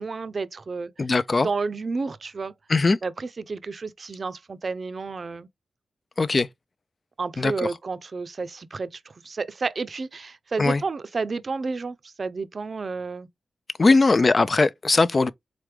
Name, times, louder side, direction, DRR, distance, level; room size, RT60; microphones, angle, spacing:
voice 1, 0.0-0.9 1.4-2.5 3.0-5.5 7.2-13.3 13.8-14.0, right 4 dB, 55° right, 0.5 m, -31 dB
voice 2, 1.0-1.5 2.7-3.0 6.2-6.5 7.4-7.7 10.6-10.8 13.8-15.3, left 3 dB, 45° left, 0.4 m, -20 dB
3.8 x 3.3 x 3.2 m
cardioid pair, 45°, 0 cm